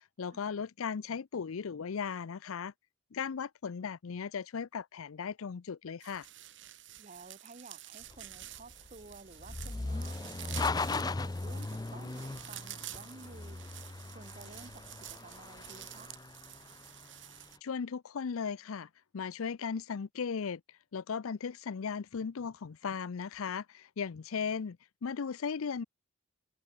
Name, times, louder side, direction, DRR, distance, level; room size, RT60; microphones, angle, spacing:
voice 1, 0.0-2.7 3.1-6.3 17.6-20.6 20.9-25.8, left 6 dB, 80° left, 0.5 m, -37 dB
sound 1, 6.0-17.6, right 14 dB, 55° right, 2.1 m, -49 dB
voice 2, 7.0-10.5 10.9-16.1, right 3 dB, 35° right, 0.8 m, -53 dB
sound 2, 8.0-17.3, left 3 dB, 20° left, 0.4 m, -38 dB
head